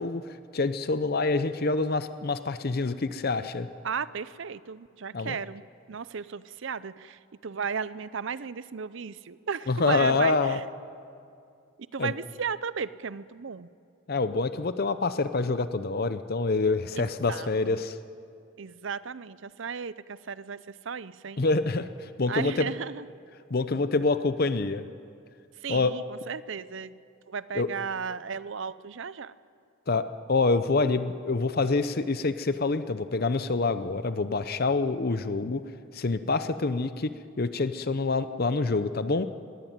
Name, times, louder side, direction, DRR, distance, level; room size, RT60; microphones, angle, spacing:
voice 1, 0.0-3.7 5.1-5.4 9.7-10.6 12.0-12.1 14.1-18.0 21.4-22.7 23.5-24.8 25.7-25.9 27.5-27.7 29.9-35.6 35.9-37.1 37.4-39.3, left 3 dB, 45° left, 11 dB, 0.7 m, -26 dB
voice 2, 3.8-5.6 5.9-10.6 11.9-13.7 16.9-17.8 18.6-21.4 22.3-23.0 25.6-27.0 27.3-29.3, right 6 dB, 60° right, 17 dB, 0.6 m, -35 dB
20.5 x 16.5 x 9.4 m, 2.4 s
head